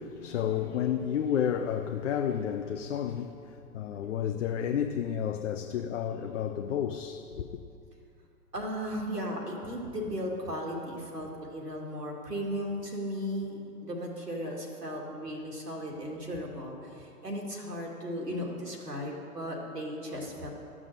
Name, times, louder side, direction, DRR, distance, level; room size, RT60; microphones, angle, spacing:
voice 1, 0.0-7.6, left 9 dB, 50° left, 0.6 m, -31 dB
voice 2, 8.5-20.5, equal, 90° right, 2.2 m, -36 dB
13.0 x 6.1 x 6.4 m
figure-of-eight pair, 110°, 46 cm